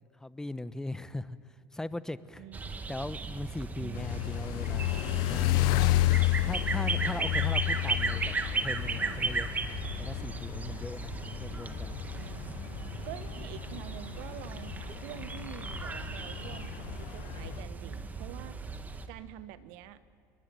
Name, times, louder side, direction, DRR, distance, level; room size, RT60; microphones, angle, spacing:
voice 1, 0.2-2.5 2.9-5.8 6.4-8.3 8.6-9.5 10.0-12.0, left 2 dB, 10° left, 15 dB, 1.0 m, -39 dB
voice 2, 2.4-2.8 3.8-4.2 9.0-9.4 12.1-12.6 13.0-18.8 19.1-20.0, right 13 dB, 75° right, 13 dB, 1.4 m, -47 dB
sound 1, 2.5-19.1, right 4 dB, 20° right, 1.9 m, -36 dB
sound 2, 3.9-17.6, left 17 dB, 70° left, 0.6 m, -32 dB
27.5 x 22.0 x 9.1 m, 2.4 s
supercardioid pair, 105°, 7 cm